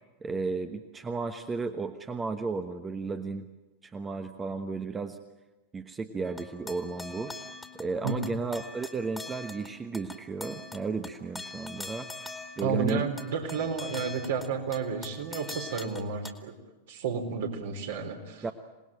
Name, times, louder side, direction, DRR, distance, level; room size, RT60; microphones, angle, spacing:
voice 1, 0.2-3.5 3.8-5.2 5.7-7.3 7.8-12.3 12.6-13.0 18.4-18.5, right 4 dB, 15° right, 8 dB, 1.2 m, -34 dB
sound 1, 6.2-16.3, left 2 dB, 5° left, 2.3 m, -44 dB
voice 2, 8.0-8.4 12.6-16.5 16.9-18.5, right 5 dB, 60° right, 3 dB, 3.9 m, -31 dB
27.0 x 19.5 x 8.9 m, 1.2 s
figure-of-eight pair, 90°, 0 cm